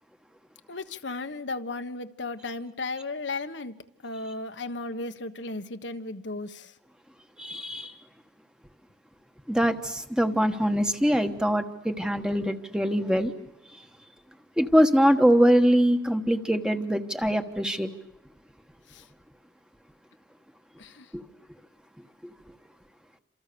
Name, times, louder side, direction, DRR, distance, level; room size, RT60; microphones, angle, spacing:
voice 1, 0.7-3.7 4.0-6.7 18.9-19.0 20.8-21.1, left 3 dB, 75° left, 8 dB, 1.4 m, -35 dB
voice 2, 7.4-7.9 9.5-13.3 14.6-17.9 21.1-21.2, equal, 5° right, 7 dB, 1.3 m, -23 dB
29.5 x 27.0 x 7.0 m, 0.88 s
head